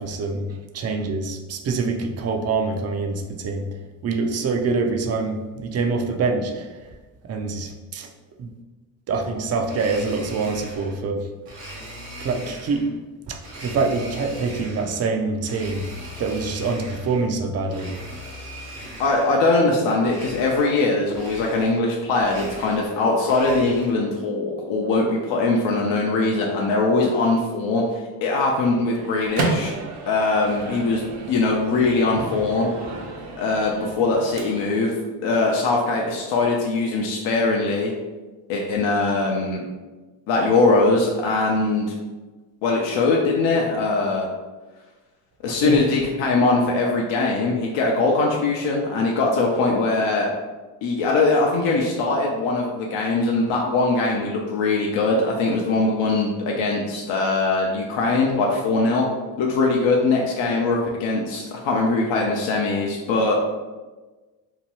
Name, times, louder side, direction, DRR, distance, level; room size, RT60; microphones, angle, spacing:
voice 1, 0.0-3.8 4.0-6.7 7.2-8.1 8.4-8.5 9.1-11.3 12.2-12.9 13.3-15.9 16.2-18.0 45.5-45.8, right 4 dB, 35° right, 5 dB, 0.4 m, -25 dB
Domestic sounds home sounds, 9.6-11.0 11.5-12.9 13.4-15.0 15.4-17.2 17.6-19.4 20.0-20.8 21.1-21.9 22.1-24.0, equal, 85° right, 1.1 m, -39 dB
voice 2, 19.0-29.7 30.1-31.0 31.3-32.7 33.4-35.0 35.2-37.9 38.5-39.6 40.3-42.0 42.6-44.3 45.4-50.3 50.8-59.1 59.4-63.4, left 3 dB, 65° left, -1 dB, 0.6 m, -21 dB
Microwave oven, 28.9-34.9, right 3 dB, 65° right, 0.7 m, -32 dB
2.9 x 2.2 x 2.9 m, 1.3 s
supercardioid pair, 70°, 50 cm